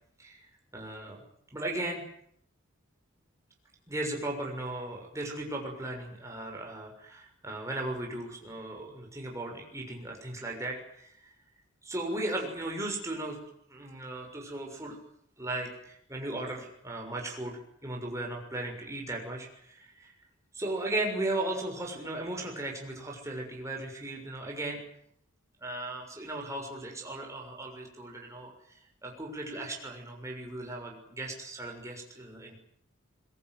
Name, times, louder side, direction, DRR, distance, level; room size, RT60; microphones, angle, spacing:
voice 1, 0.7-1.2 1.5-2.0 3.9-11.1 11.8-13.4 13.7-15.0 15.4-20.1 20.5-24.8 25.6-32.6, right 2 dB, 15° right, 0 dB, 6.6 m, -36 dB
22.5 x 22.0 x 9.5 m, 0.71 s
head